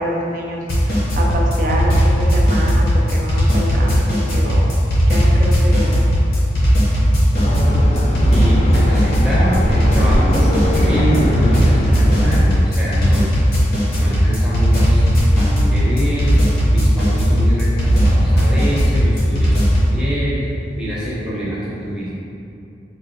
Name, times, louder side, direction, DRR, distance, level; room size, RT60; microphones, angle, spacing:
voice 1, 0.0-4.7 5.1-6.3, equal, 45° right, -2 dB, 0.4 m, -26 dB
sound 1, 0.7-19.9, equal, 60° left, 0.8 m, -16 dB
sound 2, 7.3-12.4, left 1 dB, 35° left, 0.3 m, -22 dB
voice 2, 8.3-13.3 14.0-19.6 19.9-22.1, equal, 5° right, -9 dB, 0.7 m, -25 dB
4.6 x 2.5 x 2.5 m, 2.8 s
head